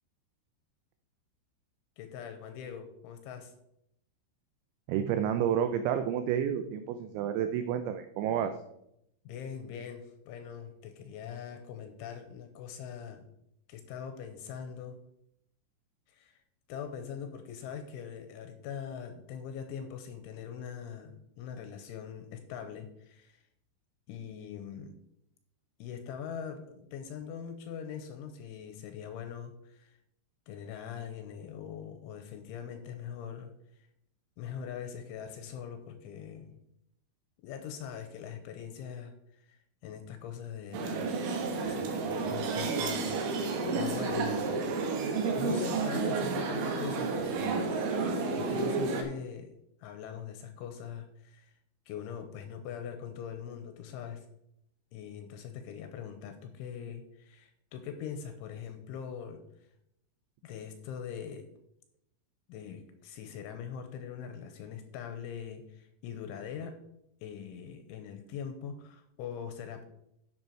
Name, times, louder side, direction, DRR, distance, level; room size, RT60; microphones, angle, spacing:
voice 1, 2.0-3.5 9.3-13.3 13.7-15.0 16.1-16.4 16.7-23.4 24.1-25.0 25.8-30.0 30.5-33.9 34.4-36.6 37.4-41.1 41.4-44.7 45.3-47.8 48.4-49.5 49.8-51.5 51.9-54.3 54.9-59.4 60.4-61.5 62.5-66.8 67.2-69.8, left 7 dB, 85° left, 7 dB, 2.9 m, -42 dB
voice 2, 4.9-8.6, right 9 dB, 90° right, 8 dB, 2.6 m, -30 dB
sound 1, 40.7-49.0, right 4 dB, 70° right, 3.6 m, -31 dB
10.5 x 6.9 x 4.5 m, 0.79 s
omnidirectional pair, 6.0 m